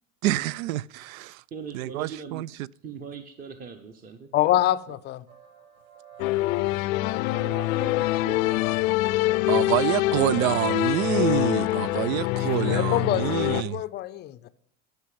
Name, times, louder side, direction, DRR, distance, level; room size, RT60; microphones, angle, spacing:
voice 1, 0.2-1.4 1.7-2.7 9.5-13.8, right 16 dB, 85° right, 0.5 m, -27 dB
voice 2, 1.5-2.4 2.8-4.3, right 6 dB, 20° right, 0.8 m, -40 dB
voice 3, 4.3-5.2 10.3-10.4 12.7-14.5, left 13 dB, 25° left, 0.4 m, -26 dB
sound 1, 5.3-11.9, right 7 dB, 60° right, 5.7 m, -49 dB
sound 2, 6.2-13.6, left 18 dB, 80° left, 0.6 m, -25 dB
voice 4, 7.2-9.3, right 7 dB, 45° right, 1.2 m, -44 dB
12.0 x 5.7 x 7.5 m
supercardioid pair, 150°, 40 cm